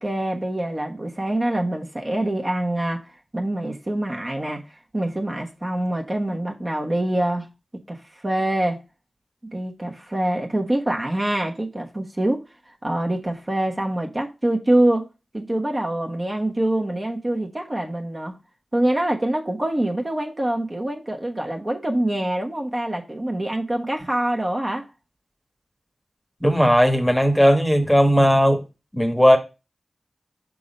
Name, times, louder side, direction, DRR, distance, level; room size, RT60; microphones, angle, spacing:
voice 1, 0.0-3.1 3.3-7.5 7.9-8.8 9.4-15.1 15.3-18.3 18.7-24.9, right 1 dB, 35° right, 1.2 m, -25 dB
voice 2, 26.4-28.6 28.9-29.4, equal, 5° left, 1.2 m, -16 dB
5.4 x 3.8 x 5.0 m
cardioid pair, 50°, 0 cm